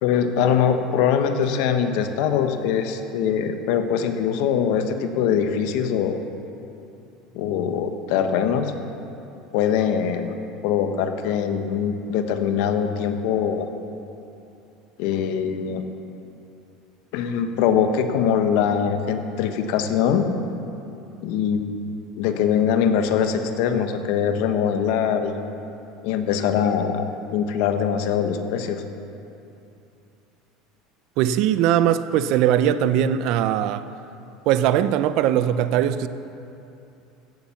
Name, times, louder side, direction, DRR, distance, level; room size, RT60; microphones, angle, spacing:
voice 1, 0.0-6.2 7.3-8.7 9.5-10.3 10.6-13.7 15.0-15.8 17.1-20.3 21.2-21.6 22.2-25.4 26.0-27.0 27.3-28.8, left 8 dB, 70° left, 7 dB, 1.1 m, -22 dB
voice 2, 31.2-33.9 34.5-36.1, right 10 dB, 60° right, 13 dB, 0.5 m, -20 dB
16.0 x 7.2 x 7.1 m, 2.8 s
supercardioid pair, 135°, 0 cm